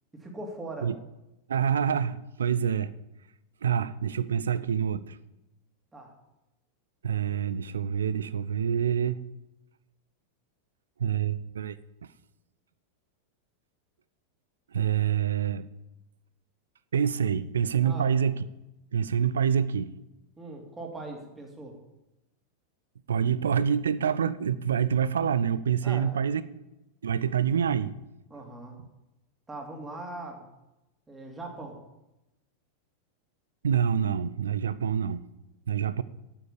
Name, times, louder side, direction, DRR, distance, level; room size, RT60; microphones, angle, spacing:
voice 1, 0.1-0.9 5.9-6.1 17.8-18.1 20.4-21.8 25.8-26.3 28.3-28.8 29.5-30.5 31.1-31.8, right 2 dB, 10° right, 1 dB, 2.8 m, -40 dB
voice 2, 1.5-2.9 3.6-5.2 7.0-9.2 11.0-11.8 14.7-15.7 16.9-18.4 18.9-19.9 23.1-26.4 27.0-28.0 33.6-35.2 35.7-36.0, right 8 dB, 65° right, 16 dB, 0.5 m, -26 dB
9.1 x 9.1 x 6.8 m, 0.94 s
figure-of-eight pair, 90°, 0 cm